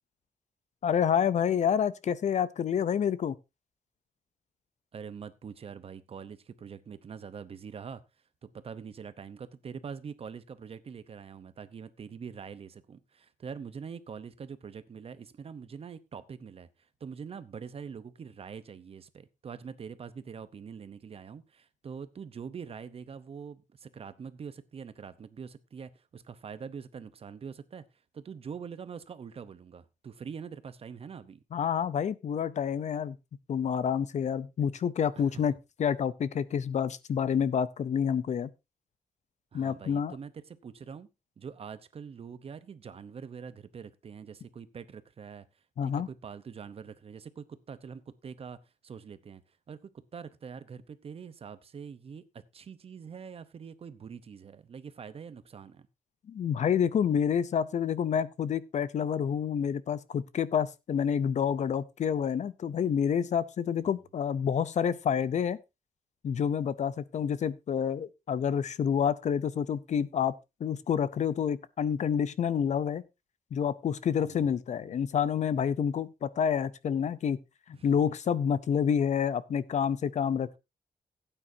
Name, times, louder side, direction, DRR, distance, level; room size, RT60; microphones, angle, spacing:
voice 1, 0.8-3.3 31.5-33.2 33.5-35.5 35.8-38.5 39.5-40.2 45.8-46.1 56.3-65.6 66.2-70.3 70.6-73.0 73.5-77.4 77.7-80.6, left 8 dB, 55° left, 0.6 m, -28 dB
voice 2, 4.9-8.0 8.4-27.8 28.1-31.4 35.2-35.4 39.5-41.1 41.4-55.9 74.2-74.5 74.9-75.0 77.7-77.9, right 6 dB, 40° right, 0.8 m, -44 dB
16.5 x 8.9 x 2.7 m
wide cardioid pair, 175°, 15 cm